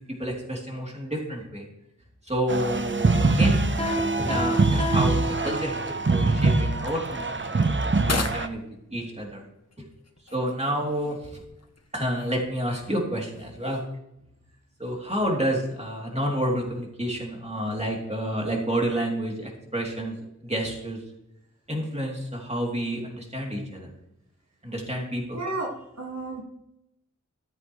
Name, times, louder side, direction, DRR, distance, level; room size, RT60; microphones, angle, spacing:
voice 1, 0.2-1.7 2.2-3.7 4.2-8.6 8.9-9.4 10.3-11.4 11.9-13.8 14.8-20.1 20.4-21.0 21.7-23.9 24.6-25.4, equal, 20° right, -1 dB, 3.0 m, -29 dB
sound 1, 2.5-8.5, right 3 dB, 40° right, 0.8 m, -24 dB
Piano, 3.8-6.1, right 1 dB, 20° left, 1.7 m, -30 dB
sound 2, 4.8-12.9, left 3 dB, 55° left, 1.1 m, -40 dB
voice 2, 25.3-25.7 26.0-26.4, right 2 dB, 60° right, -2 dB, 1.9 m, -31 dB
14.0 x 7.9 x 3.2 m, 0.83 s
wide cardioid pair, 40°, 30 cm